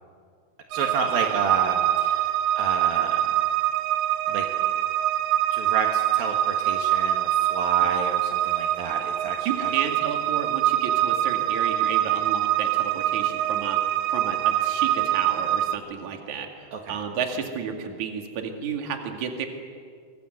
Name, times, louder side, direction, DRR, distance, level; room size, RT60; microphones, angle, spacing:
voice 1, 0.7-3.3 4.3-4.4 5.5-9.7 16.7-17.0, right 4 dB, 65° right, 2 dB, 3.3 m, -31 dB
sound 1, 0.7-15.8, right 12 dB, 85° right, 1.7 m, -24 dB
voice 2, 9.4-13.8 14.1-19.5, right 7 dB, 50° right, 4 dB, 3.3 m, -32 dB
25.5 x 24.5 x 8.0 m, 2.1 s
omnidirectional pair, 4.7 m